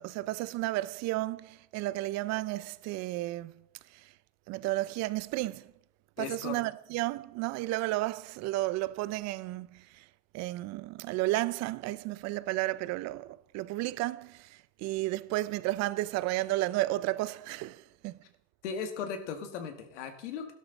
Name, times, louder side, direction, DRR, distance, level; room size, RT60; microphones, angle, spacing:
voice 1, 0.0-3.6 3.9-4.1 4.5-5.7 6.2-10.1 10.3-18.2, right 18 dB, 50° right, 0.6 m, -33 dB
voice 2, 6.2-6.6 18.6-20.5, left 6 dB, 90° left, 2.2 m, -37 dB
13.0 x 12.0 x 4.1 m
supercardioid pair, 120°, 35 cm